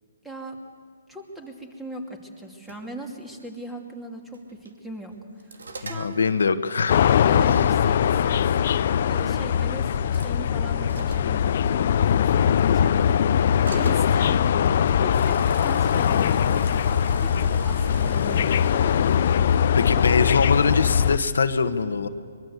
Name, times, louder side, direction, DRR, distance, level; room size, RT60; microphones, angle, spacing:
voice 1, 0.2-0.6 1.1-6.2 7.2-18.9 19.4-19.6, right 1 dB, 5° right, 3 dB, 2.6 m, -39 dB
sound 1, 2.4-2.8 3.4-3.5 4.3-4.7 5.1-6.4 7.9-8.0 8.6-8.8 9.9-10.3 10.9-11.4 13.7-14.1 14.9-19.5, right 2 dB, 85° right, 2.5 m, -40 dB
voice 2, 5.9-7.0 7.4-7.6 19.7-22.1, left 5 dB, 80° left, 8 dB, 1.4 m, -23 dB
sound 2, 6.9-21.2, left 8 dB, 50° left, 0.7 m, -21 dB
23.5 x 22.5 x 8.1 m, 2.2 s
hypercardioid pair, 155°, 0 cm